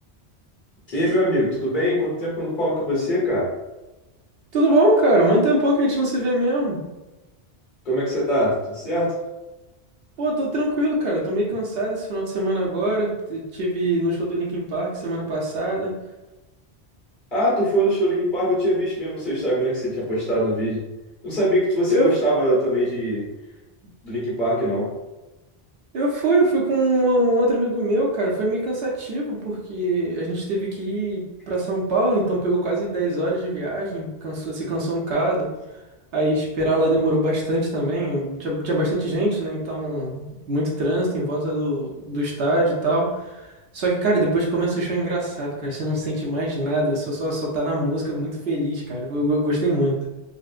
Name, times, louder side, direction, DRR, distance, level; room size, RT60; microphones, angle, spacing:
voice 1, 0.9-3.5 7.8-9.1 17.3-20.8 21.2-23.2 24.0-24.9, equal, 50° left, -7 dB, 1.7 m, -22 dB
voice 2, 4.5-6.8 10.2-16.0 21.9-22.1 25.9-35.5 36.1-50.0, right 1 dB, 70° right, -3 dB, 0.9 m, -23 dB
4.1 x 2.1 x 2.4 m, 1.0 s
omnidirectional pair, 1.1 m